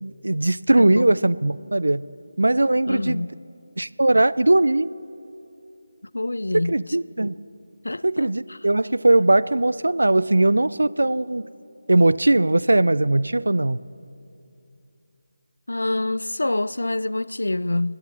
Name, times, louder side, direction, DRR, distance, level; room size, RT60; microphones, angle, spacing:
voice 1, 0.0-2.1 2.4-3.3 3.8-4.9 6.7-7.4 8.0-11.4 11.9-13.8, right 2 dB, 75° right, 0.4 m, -19 dB
voice 2, 0.8-1.1 2.9-3.4 6.1-6.8 7.8-8.3 15.7-18.0, left 2 dB, 75° left, 0.3 m, -26 dB
24.0 x 9.6 x 5.7 m
figure-of-eight pair, 160°, 0 cm